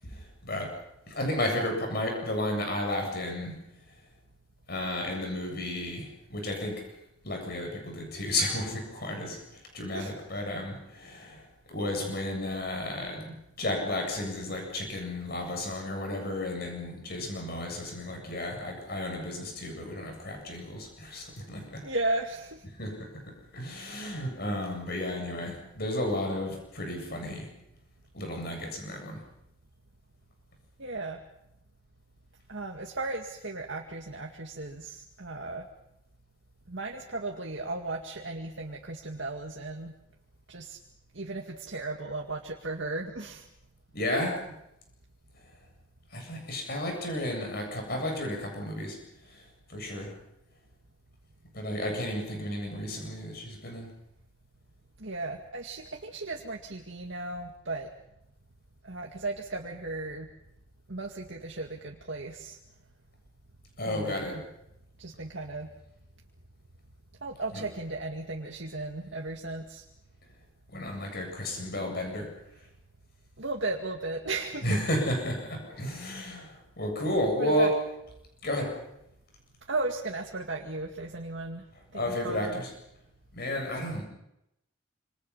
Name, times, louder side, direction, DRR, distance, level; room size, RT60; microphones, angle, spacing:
voice 1, 0.0-0.7 1.1-3.6 3.9-4.0 4.7-6.9 7.2-21.8 22.8-27.5 28.1-29.2 43.9-44.4 46.1-49.0 49.2-50.1 51.5-53.9 63.8-64.4 67.5-67.6 70.7-72.3 74.6-77.7 78.4-78.8 81.9-82.7 83.3-84.0, left 1 dB, 50° left, 2 dB, 7.9 m, -33 dB
voice 2, 21.8-22.6 30.8-31.2 32.5-35.6 36.7-39.9 40.5-40.8 41.1-43.5 55.0-57.9 58.8-60.3 60.9-62.6 63.9-64.4 65.0-65.7 67.2-69.8 73.4-74.7 77.4-77.7 79.7-81.6 81.9-82.6, right 2 dB, 65° right, 1 dB, 2.2 m, -35 dB
27.5 x 27.0 x 5.7 m, 0.82 s
head